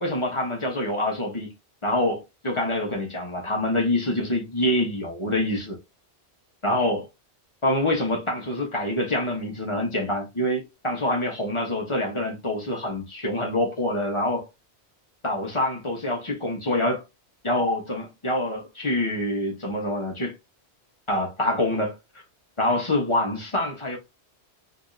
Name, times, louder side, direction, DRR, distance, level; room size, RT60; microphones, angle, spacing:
voice 1, 0.0-1.5 1.8-5.8 6.6-7.1 7.6-14.5 15.2-17.0 17.4-20.3 21.1-22.0 22.6-24.0, left 1 dB, 30° left, 1.0 m, -26 dB
3.4 x 3.0 x 2.5 m
omnidirectional pair, 1.2 m